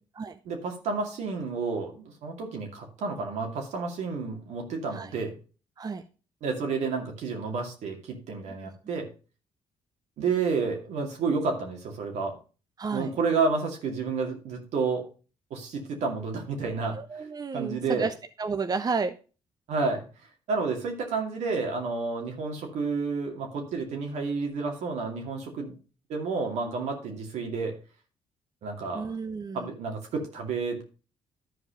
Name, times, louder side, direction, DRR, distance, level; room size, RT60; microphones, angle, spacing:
voice 1, 0.4-5.3 6.4-9.1 10.2-12.4 12.9-15.1 15.5-17.0 17.5-18.1 19.7-20.0 20.5-25.7 26.1-27.8 28.6-29.1 29.5-30.8, right 4 dB, 75° right, 2 dB, 2.4 m, -30 dB
voice 2, 12.8-13.1 16.9-19.1 28.9-29.6, right 4 dB, 35° right, 9 dB, 0.7 m, -32 dB
11.5 x 4.9 x 5.0 m, 0.35 s
supercardioid pair, 65°, 12 cm